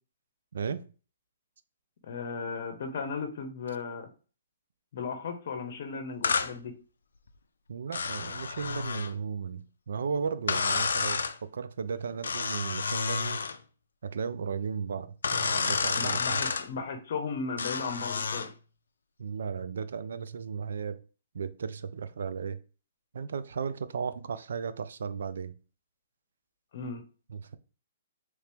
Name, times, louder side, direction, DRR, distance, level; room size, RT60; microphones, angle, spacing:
voice 1, 0.5-0.9 7.7-13.4 14.0-16.4 19.2-21.0 21.3-22.6 23.1-25.6 27.3-27.6, right 6 dB, 75° right, 0.4 m, -35 dB
voice 2, 2.1-4.1 4.9-6.7 15.9-18.5 26.7-27.0, left 5 dB, 55° left, 0.8 m, -36 dB
sound 1, 6.2-6.5 7.9-9.1 10.5-11.3 12.2-13.6 15.2-16.7 17.6-18.5, left 5 dB, 90° left, 0.4 m, -30 dB
3.1 x 2.9 x 3.4 m
hypercardioid pair, 155°, 0 cm